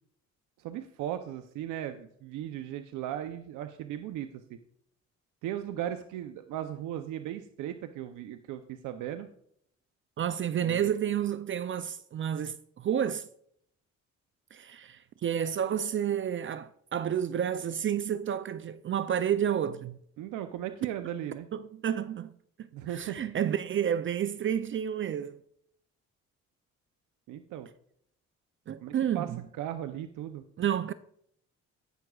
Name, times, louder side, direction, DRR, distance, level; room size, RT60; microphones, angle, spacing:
voice 1, 0.6-4.6 5.4-9.3 10.6-10.9 20.2-21.5 22.7-23.2 27.3-27.7 28.8-29.3 29.6-30.4, right 11 dB, 90° right, 0.6 m, -37 dB
voice 2, 10.2-13.3 14.5-20.0 21.5-25.4 28.7-29.4 30.6-30.9, right 9 dB, 40° right, 0.4 m, -30 dB
17.0 x 6.0 x 2.3 m
cardioid pair, 90°, 30 cm